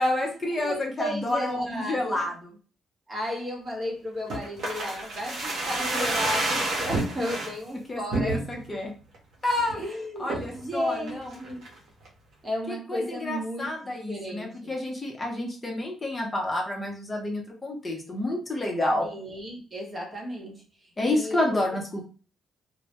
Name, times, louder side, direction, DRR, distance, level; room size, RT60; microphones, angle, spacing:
voice 1, 0.0-2.5 7.9-8.9 9.4-9.8 10.2-11.4 12.7-19.1 21.0-22.0, left 1 dB, 25° left, 0 dB, 0.6 m, -29 dB
voice 2, 0.6-2.3 3.1-8.4 9.7-11.6 12.4-14.7 19.0-20.6 21.0-21.6, equal, 30° right, -1 dB, 0.9 m, -34 dB
sound 1, 4.3-7.5 8.1-8.7 9.1-9.2 9.5-9.8 10.3-10.6 11.1-11.8 12.1-12.2, right 2 dB, 75° right, 0.7 m, -29 dB
2.1 x 2.1 x 2.8 m, 0.38 s
cardioid pair, 90°, 0 cm